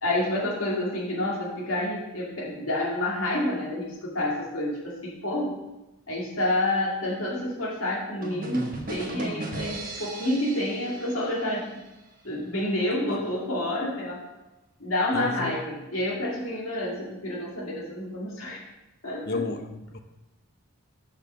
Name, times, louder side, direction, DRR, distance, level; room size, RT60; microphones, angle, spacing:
voice 1, 0.0-5.5 6.1-11.7 12.2-14.2 14.8-18.6 19.0-19.4, left 1 dB, 75° left, -4 dB, 2.5 m, -29 dB
sound 1, 8.2-11.9, right 2 dB, 40° right, 1.2 m, -37 dB
voice 2, 15.1-15.6 19.3-20.0, left 3 dB, 45° left, 7 dB, 0.7 m, -32 dB
6.8 x 5.7 x 5.9 m, 1.0 s
head